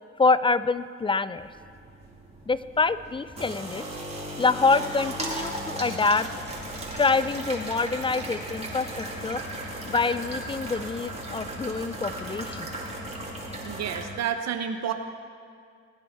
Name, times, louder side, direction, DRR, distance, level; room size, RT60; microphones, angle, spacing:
voice 1, 0.2-1.5 2.5-3.8 4.4-6.3 6.9-9.4 9.9-12.7, left 4 dB, 15° left, 15 dB, 0.4 m, -26 dB
sound 1, 1.4-14.0, right 1 dB, 20° right, 2.4 m, -36 dB
voice 2, 13.6-14.9, right 8 dB, 60° right, 7 dB, 0.8 m, -30 dB
20.5 x 9.1 x 4.3 m, 2.2 s
cardioid pair, 90°, 30 cm